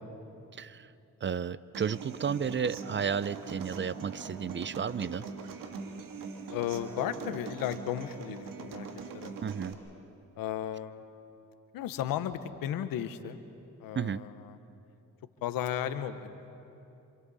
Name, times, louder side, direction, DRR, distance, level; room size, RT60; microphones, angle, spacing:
voice 1, 1.2-5.2 9.4-9.8 14.0-14.2, right 7 dB, 35° right, 18 dB, 0.6 m, -32 dB
Human voice / Acoustic guitar, 1.7-9.7, right 5 dB, 75° right, 1.8 m, -42 dB
voice 2, 6.5-8.9 9.1-9.3 10.4-11.0 11.7-13.4 13.8-14.6 15.4-16.4, left 10 dB, 85° left, 10 dB, 1.1 m, -34 dB
27.5 x 27.0 x 4.2 m, 2.8 s
supercardioid pair, 60°, 34 cm